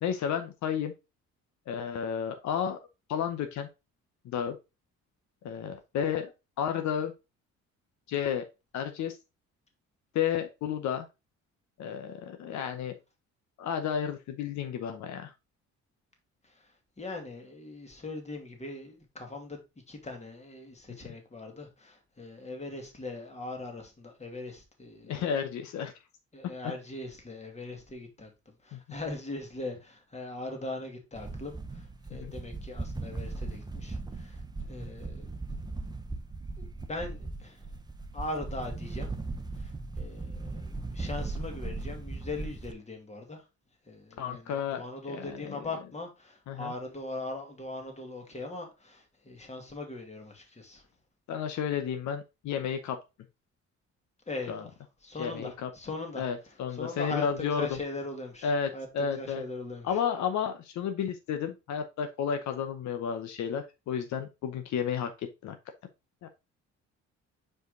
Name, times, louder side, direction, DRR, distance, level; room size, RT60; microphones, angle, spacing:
voice 1, 0.0-0.9 1.7-2.8 3.1-3.7 4.2-4.6 5.4-6.3 6.6-7.1 8.1-8.4 8.7-9.2 10.1-11.1 11.8-12.9 13.6-15.3 21.0-21.1 25.1-25.9 26.6-26.7 28.7-28.8 32.1-32.3 44.2-45.7 46.5-46.7 51.3-53.0 54.5-54.6 55.2-55.7 56.2-57.8 58.4-59.4 59.8-65.6 66.2-66.3, left 8 dB, 80° left, 0.9 m, -32 dB
voice 2, 16.4-19.6 19.9-25.6 26.3-35.3 36.6-37.7 38.1-39.1 39.5-43.4 43.9-50.8 54.3-54.7 55.0-56.2 56.7-60.0, left 2 dB, 25° left, 2.0 m, -40 dB
sound 1, 31.1-42.7, right 3 dB, 15° right, 0.8 m, -38 dB
5.0 x 5.0 x 3.8 m
cardioid pair, 110°, 29 cm